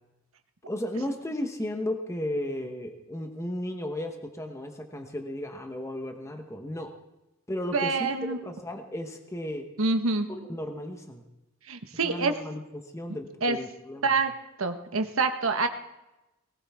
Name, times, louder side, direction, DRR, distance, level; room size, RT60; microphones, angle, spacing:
voice 1, 0.7-6.9 7.5-9.7 10.3-11.2 12.0-14.2, left 1 dB, 15° left, 4 dB, 1.1 m, -34 dB
voice 2, 7.7-8.4 9.8-10.3 11.7-12.3 13.4-13.6 14.0-14.3 14.6-15.7, right 3 dB, 80° right, 7 dB, 1.3 m, -26 dB
19.0 x 18.0 x 3.6 m, 0.97 s
head